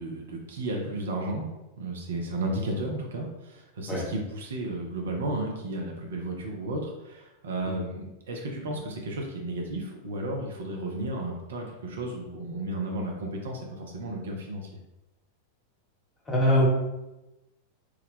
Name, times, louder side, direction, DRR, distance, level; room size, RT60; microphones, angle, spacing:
voice 1, 0.0-1.5 1.8-14.7, right 1 dB, 60° right, 0 dB, 0.5 m, -33 dB
voice 2, 16.3-16.7, equal, 15° left, -3 dB, 1.1 m, -23 dB
3.1 x 2.2 x 3.5 m, 0.99 s
figure-of-eight pair, 90°, 0 cm